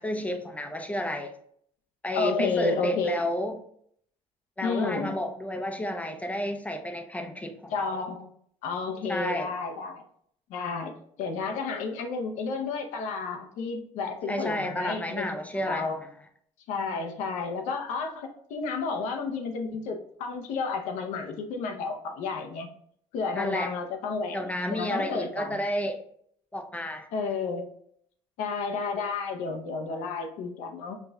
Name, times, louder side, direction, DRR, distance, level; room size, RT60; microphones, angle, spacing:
voice 1, 0.0-1.3 2.0-3.6 4.6-8.0 9.1-9.5 14.3-16.1 23.3-23.7 24.3-26.0 26.5-27.1, left 1 dB, 10° left, 6 dB, 0.5 m, -31 dB
voice 2, 2.1-3.1 4.6-5.1 7.7-8.3 8.6-10.0 10.5-10.9 11.2-15.3 15.5-16.0 16.7-22.7 23.1-24.4 24.7-25.6 27.1-27.7 28.4-30.9, left 4 dB, 80° left, 4 dB, 0.7 m, -31 dB
5.2 x 2.6 x 2.2 m, 0.65 s
cardioid pair, 105°, 12 cm